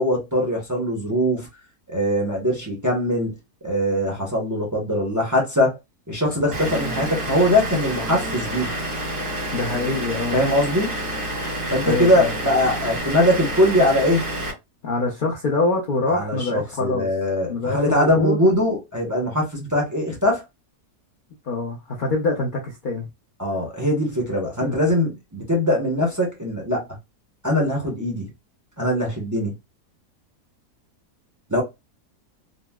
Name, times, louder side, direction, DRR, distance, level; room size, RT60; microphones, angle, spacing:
voice 1, 0.0-1.5 1.9-3.3 3.6-5.8 6.1-8.7 10.3-10.9 11.7-14.2 16.1-20.4 23.4-26.9 27.4-28.3 28.8-29.5 31.5-31.6, left 1 dB, 25° right, 0.4 m, -21 dB
Vehicle / Engine, 6.5-14.5, right 1 dB, 80° right, 1.9 m, -28 dB
voice 2, 9.5-10.4 11.8-12.3 14.8-17.1 17.5-18.4 21.5-23.1 24.6-24.8, left 3 dB, 60° left, 0.5 m, -25 dB
3.9 x 2.0 x 2.3 m
omnidirectional pair, 1.7 m